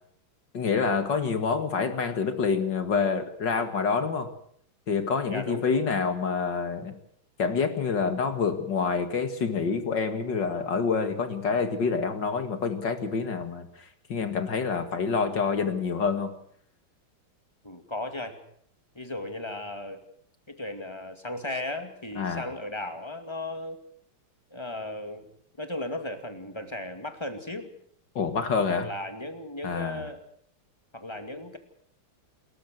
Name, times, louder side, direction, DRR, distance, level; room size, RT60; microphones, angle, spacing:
voice 1, 0.5-4.3 4.9-6.9 7.4-13.7 14.1-16.3 22.2-22.5 28.2-28.9 29.6-30.1, left 5 dB, 55° left, 9 dB, 2.5 m, -27 dB
voice 2, 5.3-5.7 17.6-18.4 18.9-20.0 20.5-23.8 24.5-25.3 25.6-27.7 28.7-30.2 30.9-31.6, left 1 dB, 10° left, 7 dB, 2.3 m, -36 dB
28.0 x 14.0 x 7.9 m, 0.65 s
omnidirectional pair, 2.4 m